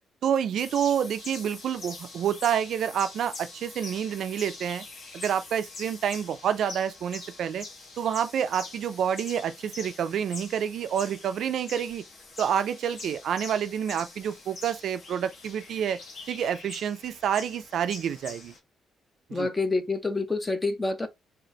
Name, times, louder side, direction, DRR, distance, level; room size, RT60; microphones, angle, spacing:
voice 1, 0.2-4.8 5.1-7.6 8.0-12.0 12.4-16.0 16.3-18.5 19.3-19.5, right 8 dB, 60° right, 0.4 m, -28 dB
sound 1, 0.6-18.6, left 3 dB, 50° left, 1.4 m, -44 dB
voice 2, 19.3-21.1, left 3 dB, 15° left, 0.6 m, -27 dB
3.9 x 2.5 x 3.1 m
cardioid pair, 145°, 0 cm